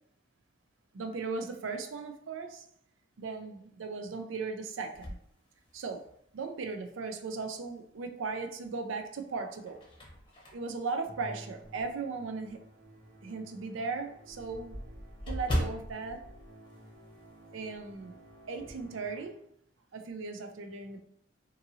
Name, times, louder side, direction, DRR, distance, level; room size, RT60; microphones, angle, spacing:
voice 1, 0.9-2.7 3.2-5.2 5.7-6.1 6.3-9.8 10.5-12.6 13.2-14.8 15.3-16.2 17.5-18.2 18.5-19.5 19.9-21.0, right 4 dB, 75° right, 6 dB, 0.4 m, -37 dB
sound 1, 4.9-6.3 6.8-6.9 8.4-8.9 9.4-12.0 12.5-12.6 13.0-13.1 13.3-13.4 13.7-17.5 17.7-18.0 18.3-18.9, equal, 25° left, 0.8 m, -39 dB
Musical instrument, 11.0-19.6, right 1 dB, 45° right, 1.0 m, -53 dB
2.7 x 2.6 x 2.7 m, 0.67 s
head